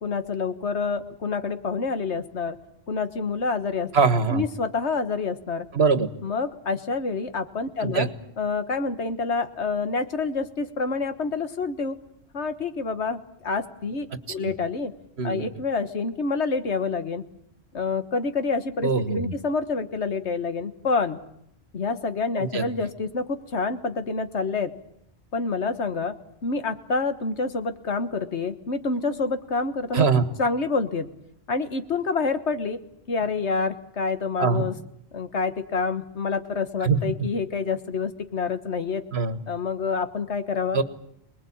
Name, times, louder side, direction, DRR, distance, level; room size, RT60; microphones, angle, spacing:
voice 1, 0.0-2.6 2.9-3.9 4.3-5.7 6.2-8.1 8.4-12.0 12.3-14.9 15.2-17.2 17.7-21.2 21.7-24.7 25.3-26.2 26.4-30.1 30.4-31.1 31.5-32.8 33.1-34.7 35.1-39.0 39.5-40.8, left 4 dB, 80° left, 9 dB, 1.8 m, -27 dB
voice 2, 3.9-4.4 5.7-6.1 7.8-8.1 14.4-14.5 15.2-15.5 18.8-19.3 22.4-22.7 29.9-30.2 34.4-34.7 36.8-37.0 39.1-39.4 40.7-40.8, right 5 dB, 65° right, 12 dB, 1.7 m, -22 dB
25.5 x 20.5 x 8.7 m, 0.74 s
omnidirectional pair, 1.1 m